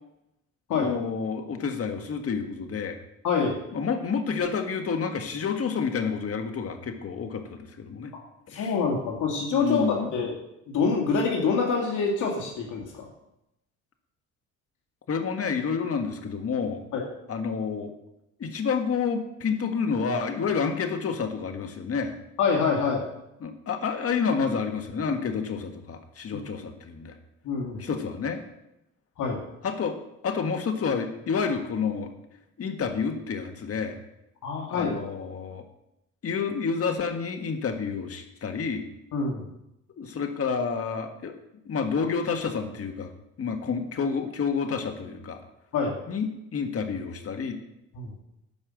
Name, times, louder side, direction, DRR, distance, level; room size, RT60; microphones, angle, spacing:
voice 1, 0.8-3.0 3.7-8.1 8.5-8.8 9.6-10.1 15.1-16.8 17.3-18.0 18.4-22.1 23.4-27.2 27.8-28.4 29.6-30.0 30.2-32.1 32.6-34.0 34.7-35.6 36.2-38.9 40.0-41.3 41.6-43.1 43.4-45.4 46.1-47.6, left 5 dB, 50° left, 6 dB, 1.7 m, -29 dB
voice 2, 3.2-3.6 8.5-10.3 10.7-13.1 16.9-17.0 22.4-23.0 26.3-26.5 27.4-27.8 29.2-29.4 34.4-34.9 39.1-39.4 45.7-45.9 47.9-48.1, left 5 dB, 80° left, -1 dB, 2.3 m, -26 dB
12.5 x 5.5 x 7.7 m, 0.86 s
cardioid pair, 90°, 30 cm